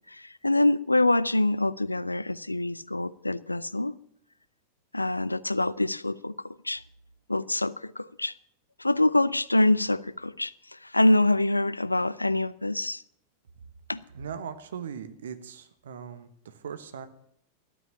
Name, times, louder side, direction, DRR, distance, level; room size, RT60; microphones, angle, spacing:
voice 1, 0.1-3.9 4.9-6.3 6.6-6.8 7.3-8.3 8.8-13.0 13.9-14.0, left 2 dB, 85° left, 0.4 m, -25 dB
voice 2, 14.1-17.1, right 7 dB, 65° right, 1.2 m, -39 dB
12.5 x 8.8 x 8.7 m
figure-of-eight pair, 90°, 0 cm